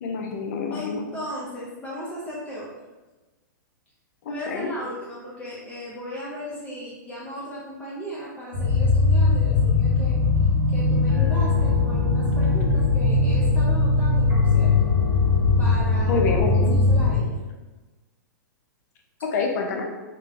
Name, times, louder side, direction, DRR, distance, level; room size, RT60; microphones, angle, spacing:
voice 1, 0.0-1.0 4.2-4.7 16.1-16.7 19.2-19.9, left 4 dB, 55° left, 2 dB, 0.6 m, -27 dB
voice 2, 0.7-2.7 4.3-10.2 10.7-14.9 15.6-16.3 16.5-17.4, equal, 10° left, -7 dB, 0.6 m, -36 dB
sound 1, 8.5-17.2, left 3 dB, 85° right, 1.2 m, -20 dB
3.3 x 2.2 x 3.0 m, 1.2 s
hypercardioid pair, 135°, 11 cm